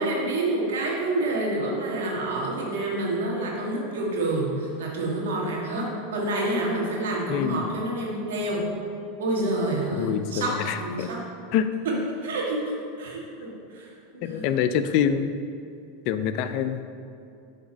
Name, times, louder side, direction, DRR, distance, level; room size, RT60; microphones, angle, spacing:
voice 1, 0.0-8.6 9.2-11.2 11.8-14.6, right 2 dB, 75° right, -3 dB, 1.6 m, -28 dB
voice 2, 7.3-7.7 10.0-11.1 11.5-11.7 14.2-15.3 16.1-16.9, left 8 dB, 55° left, 10 dB, 0.4 m, -25 dB
7.5 x 3.5 x 5.3 m, 2.6 s
hypercardioid pair, 95°, 0 cm